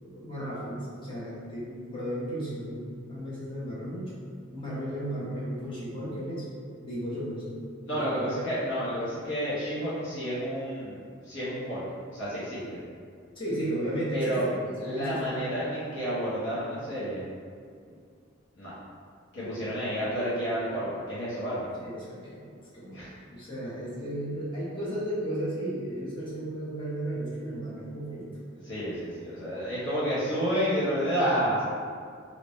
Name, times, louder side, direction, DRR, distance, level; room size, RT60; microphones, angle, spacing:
voice 1, 0.0-4.1 4.5-6.5 6.8-7.6 7.9-8.3 13.3-15.4 19.4-19.7 21.8-28.3, right 1 dB, 25° left, -9 dB, 1.0 m, -34 dB
voice 2, 7.9-11.8 12.1-12.8 14.1-14.4 14.8-17.2 18.5-18.7 19.3-21.7 22.9-23.1 28.6-31.6, equal, 65° left, -11 dB, 1.1 m, -30 dB
3.2 x 2.9 x 3.1 m, 2.2 s
head